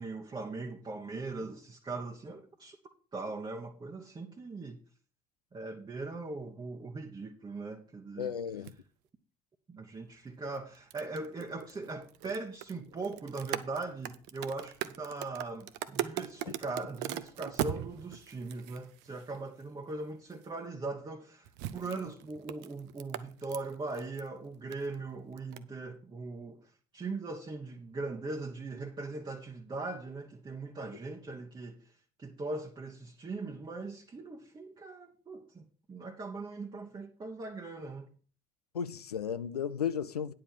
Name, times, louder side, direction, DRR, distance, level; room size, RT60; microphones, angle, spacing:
voice 1, 0.0-2.8 3.1-4.8 5.5-8.4 9.7-31.9 32.2-38.1, right 3 dB, 25° right, 1.1 m, -40 dB
voice 2, 8.2-8.7 38.7-40.3, left 8 dB, 80° left, 0.5 m, -34 dB
sound 1, 8.6-8.7 10.5-19.6 20.3-20.4 21.4-24.3 24.5-24.9 25.4-25.6, right 12 dB, 60° right, 0.7 m, -40 dB
10.0 x 4.8 x 7.4 m
figure-of-eight pair, 55°, 19 cm